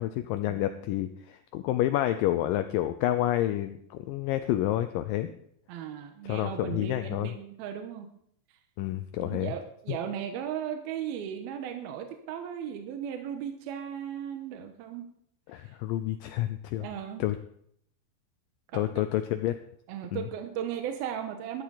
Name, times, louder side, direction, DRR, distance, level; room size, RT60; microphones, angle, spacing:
voice 1, 0.0-5.3 6.2-7.3 8.8-9.5 9.9-10.0 15.5-16.9 17.2-17.4 18.7-19.6 20.1-20.2, left 13 dB, 80° left, 10 dB, 2.0 m, -29 dB
voice 2, 5.7-8.1 9.2-15.1 15.6-15.7 16.8-17.2 18.7-19.1 19.9-21.6, right 9 dB, 80° right, 5 dB, 2.8 m, -36 dB
13.5 x 11.5 x 4.0 m, 0.68 s
omnidirectional pair, 4.5 m